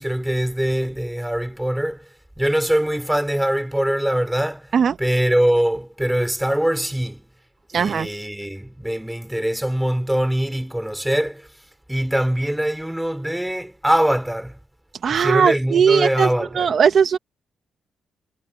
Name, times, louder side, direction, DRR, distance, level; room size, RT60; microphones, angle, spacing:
voice 1, 0.0-2.0 2.4-4.7 5.0-7.3 7.7-11.5 11.9-14.6 15.1-16.7, right 1 dB, 5° right, 3.0 m, -22 dB
voice 2, 7.7-8.1 15.0-16.3 16.6-17.2, right 7 dB, 55° right, 1.0 m, -18 dB
cardioid pair, 115°, 0 cm